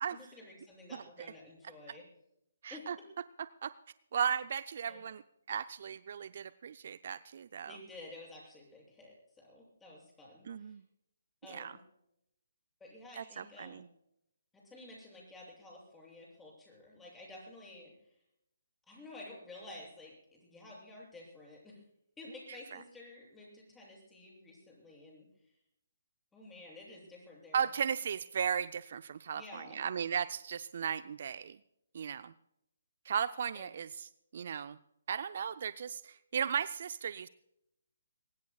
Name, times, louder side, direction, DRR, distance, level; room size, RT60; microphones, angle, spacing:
voice 1, 0.1-2.0 2.7-3.1 4.9-5.0 7.7-10.8 11.4-11.8 12.8-13.8 14.5-18.2 18.9-21.8 22.2-25.3 26.3-27.7 29.3-29.8 33.5-33.7, left 2 dB, 10° left, -4 dB, 7.5 m, -52 dB
voice 2, 2.6-3.0 3.6-3.7 4.1-5.2 5.5-7.8 10.5-10.8 11.5-11.7 13.2-13.9 27.5-31.6 31.9-32.3 33.0-34.8 35.1-37.3, right 7 dB, 50° right, 14 dB, 0.5 m, -36 dB
23.5 x 20.0 x 2.3 m, 0.78 s
figure-of-eight pair, 140°, 0 cm